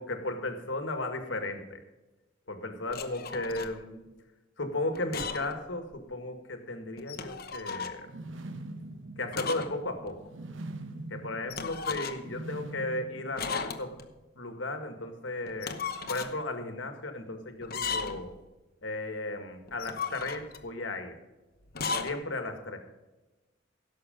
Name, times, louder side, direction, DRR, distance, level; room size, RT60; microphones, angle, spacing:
voice 1, 0.0-1.8 2.5-4.1 4.6-8.1 9.2-10.3 11.2-13.9 14.4-15.8 16.1-18.3 18.8-21.1 22.0-22.8, left 2 dB, 75° left, 6 dB, 1.8 m, -35 dB
sound 1, 2.9-3.7 4.9-5.6 5.9-6.0 7.0-8.0 9.3-9.8 10.1-10.2 11.5-12.4 13.4-14.1 15.5-16.3 17.6-18.3 19.7-20.7 21.7-22.2, left 5 dB, 55° left, 0.9 m, -35 dB
sound 2, 8.0-14.1, right 2 dB, 85° right, 1.0 m, -43 dB
16.5 x 6.6 x 5.2 m, 1.1 s
head